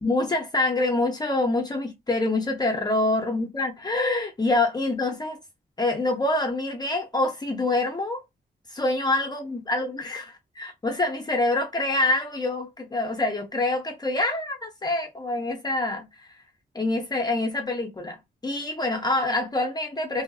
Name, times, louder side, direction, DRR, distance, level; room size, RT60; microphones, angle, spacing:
voice 1, 0.0-5.4 5.8-8.2 8.7-16.3 16.7-18.2 18.4-20.2, left 2 dB, 25° left, 0.6 m, -26 dB
2.7 x 2.5 x 2.3 m
wide cardioid pair, 125°, 17 cm